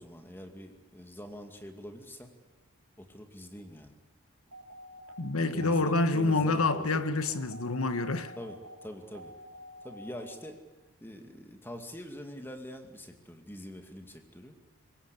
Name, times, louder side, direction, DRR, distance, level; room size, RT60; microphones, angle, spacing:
voice 1, 0.0-2.3 3.0-3.9 5.5-7.1 8.4-9.3 9.8-10.6 11.0-14.6, equal, 10° left, 2.3 m, -44 dB
sound 1, 4.5-10.4, equal, 70° right, 4.0 m, -50 dB
voice 2, 5.2-8.3, left 3 dB, 70° left, 1.5 m, -27 dB
24.0 x 20.5 x 8.4 m
head